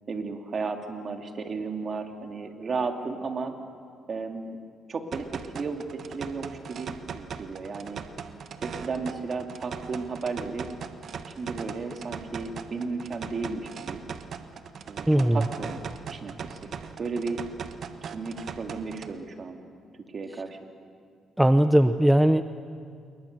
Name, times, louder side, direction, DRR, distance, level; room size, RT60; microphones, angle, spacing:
voice 1, 0.1-3.5 4.1-4.6 4.9-8.0 8.6-10.7 11.2-14.0 14.9-15.8 16.1-16.7 17.0-17.4 18.0-19.6 20.1-20.6, right 4 dB, 45° right, 4 dB, 2.6 m, -34 dB
sound 1, 5.1-19.1, right 6 dB, 60° right, 1.3 m, -40 dB
voice 2, 15.1-15.4 21.4-22.4, right 1 dB, 5° right, 10 dB, 0.7 m, -19 dB
27.5 x 22.5 x 6.7 m, 2.2 s
cardioid pair, 90°, 0 cm